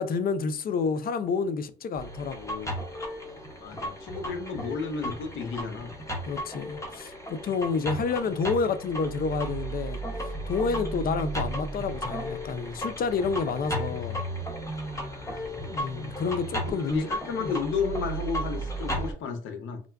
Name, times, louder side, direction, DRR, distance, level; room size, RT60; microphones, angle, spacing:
voice 1, 0.0-2.8 6.3-14.2 15.6-17.1 17.4-17.5, left 5 dB, 50° left, 0.4 m, -29 dB
sound 1, 2.0-19.1, right 1 dB, 15° left, 0.8 m, -34 dB
voice 2, 3.6-5.9 14.9-15.5 16.6-19.8, left 5 dB, 80° left, 0.7 m, -33 dB
3.7 x 2.2 x 2.2 m
cardioid pair, 90°, 20 cm